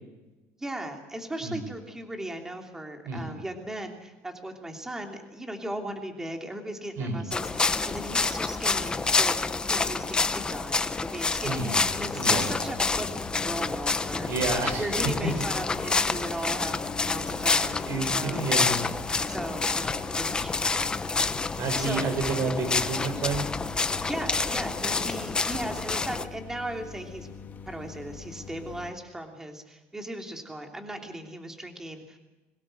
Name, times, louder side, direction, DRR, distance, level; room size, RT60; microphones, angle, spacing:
voice 1, 0.6-9.4 9.7-14.3 14.8-18.4 19.2-20.9 21.2-21.5 21.8-22.1 23.9-27.3 27.7-32.2, right 1 dB, 10° right, 3 dB, 3.0 m, -37 dB
voice 2, 3.0-3.4 7.0-7.3 11.4-11.8 12.2-12.5 14.2-14.9 15.2-15.3 17.9-18.8 21.6-23.4, right 3 dB, 55° right, 5 dB, 7.0 m, -30 dB
sound 1, 7.3-26.2, left 4 dB, 15° left, 1.0 m, -28 dB
sound 2, 11.5-28.9, left 5 dB, 35° left, 2.0 m, -42 dB
23.0 x 18.5 x 7.8 m, 1.1 s
cardioid pair, 145°, 6 cm